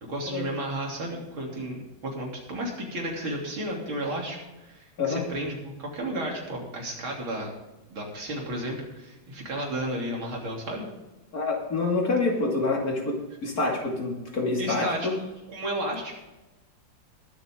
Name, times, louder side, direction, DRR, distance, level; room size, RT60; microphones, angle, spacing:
voice 1, 0.0-7.5 7.9-10.9 14.6-15.1 15.5-16.2, right 1 dB, 80° right, -1 dB, 4.0 m, -33 dB
voice 2, 11.3-15.1, left 3 dB, 45° left, 0 dB, 3.0 m, -27 dB
21.5 x 8.0 x 3.8 m, 1.1 s
omnidirectional pair, 2.2 m